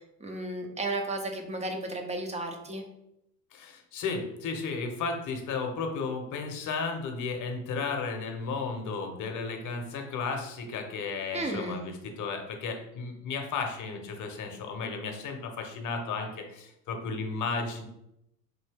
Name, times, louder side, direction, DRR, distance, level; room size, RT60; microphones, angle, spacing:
voice 1, 0.2-2.8 11.3-11.8, right 2 dB, 15° right, 3 dB, 0.6 m, -33 dB
voice 2, 3.5-17.8, left 4 dB, 40° left, 4 dB, 1.0 m, -34 dB
4.1 x 2.6 x 3.4 m, 0.82 s
hypercardioid pair, 80°, 49 cm